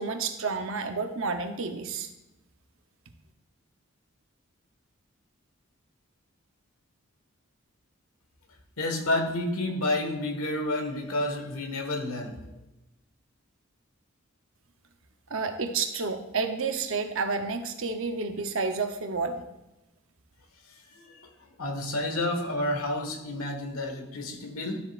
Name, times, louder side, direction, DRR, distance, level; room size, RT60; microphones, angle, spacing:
voice 1, 0.0-2.1 15.3-19.4, right 4 dB, 70° right, 6 dB, 0.9 m, -30 dB
voice 2, 8.8-12.4 20.7-21.3 21.6-24.8, left 1 dB, 90° left, 3 dB, 1.6 m, -30 dB
12.5 x 7.6 x 2.5 m, 0.96 s
head